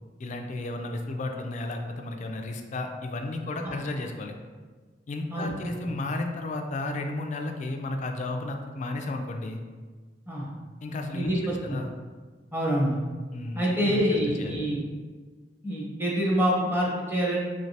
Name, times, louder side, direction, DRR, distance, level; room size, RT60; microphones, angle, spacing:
voice 1, 0.2-4.3 5.1-9.6 10.8-11.9 13.3-14.6, left 2 dB, 40° left, 4 dB, 0.3 m, -33 dB
voice 2, 5.3-5.9 10.3-10.5 11.1-11.8 12.5-13.0 13.5-14.8 15.6-17.4, equal, 10° right, -4 dB, 0.7 m, -26 dB
3.2 x 3.1 x 2.7 m, 1.5 s
head